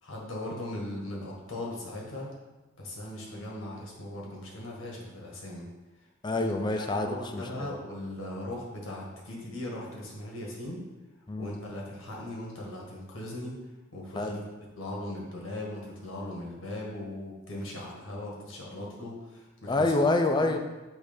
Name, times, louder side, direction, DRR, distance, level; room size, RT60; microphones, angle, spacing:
voice 1, 0.0-2.3 2.8-5.6 6.3-10.8 11.4-13.6 13.9-14.4 14.8-19.9 20.4-20.5, left 1 dB, 80° left, -2 dB, 1.7 m, -38 dB
voice 2, 6.2-7.7 11.3-11.5 14.2-14.4 19.7-20.6, left 2 dB, 20° left, 5 dB, 0.4 m, -27 dB
6.3 x 3.3 x 5.2 m, 1.1 s
head